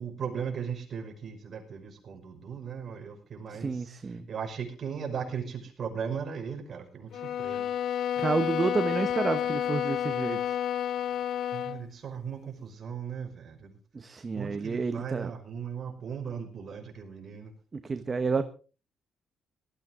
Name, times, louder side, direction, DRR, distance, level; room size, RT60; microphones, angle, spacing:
voice 1, 0.0-7.7 11.5-13.8 14.4-17.5, right 7 dB, 45° right, 3 dB, 5.5 m, -37 dB
voice 2, 3.5-4.3 8.2-10.6 13.9-15.3 17.7-18.4, right 4 dB, 30° right, 9 dB, 1.1 m, -30 dB
sound 1, 7.1-11.9, left 10 dB, 70° left, 0.8 m, -30 dB
18.5 x 14.0 x 3.8 m, 0.35 s
cardioid pair, 105°, 0 cm